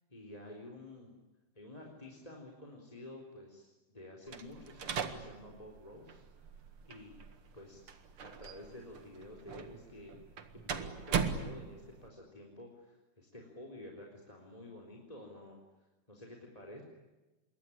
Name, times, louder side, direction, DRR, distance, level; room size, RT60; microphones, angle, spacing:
voice 1, 0.1-1.1 1.5-6.2 6.9-7.2 7.5-7.9 8.2-10.2 10.5-15.6 16.1-16.8, left 1 dB, 10° left, 1 dB, 3.5 m, -50 dB
sound 1, 4.3-12.1, right 6 dB, 50° right, 1.9 m, -40 dB
27.0 x 22.5 x 10.0 m, 1.1 s
omnidirectional pair, 4.5 m